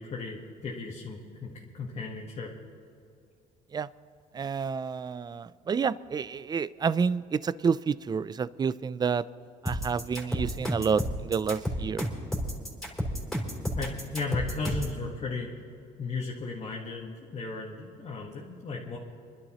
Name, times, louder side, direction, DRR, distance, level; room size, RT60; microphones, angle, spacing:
voice 1, 0.0-2.5 13.7-15.5 16.0-19.0, left 3 dB, 40° left, -3 dB, 1.6 m, -35 dB
voice 2, 4.3-9.3 9.6-12.1, right 6 dB, 25° right, 18 dB, 0.4 m, -29 dB
sound 1, 9.7-15.0, equal, ahead, 3.4 m, -31 dB
28.5 x 11.5 x 3.1 m, 2.6 s
cardioid pair, 110°, 17 cm